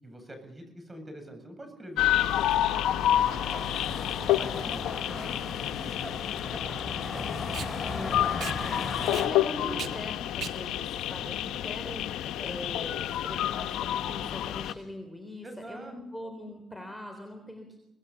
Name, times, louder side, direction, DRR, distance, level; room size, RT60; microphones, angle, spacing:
voice 1, 0.0-2.3 2.9-7.3 8.6-9.9 15.4-16.0, right 1 dB, 20° right, 6 dB, 7.9 m, -45 dB
sound 1, 2.0-14.7, left 12 dB, 85° left, 0.9 m, -29 dB
sound 2, 2.1-9.3, left 3 dB, 20° left, 4.1 m, -38 dB
Packing tape duct tape, 4.9-12.2, right 8 dB, 65° right, 1.7 m, -43 dB
voice 2, 7.9-17.8, left 1 dB, 5° left, 4 dB, 3.8 m, -42 dB
25.0 x 20.0 x 7.2 m, 0.90 s
cardioid pair, 90°, 0 cm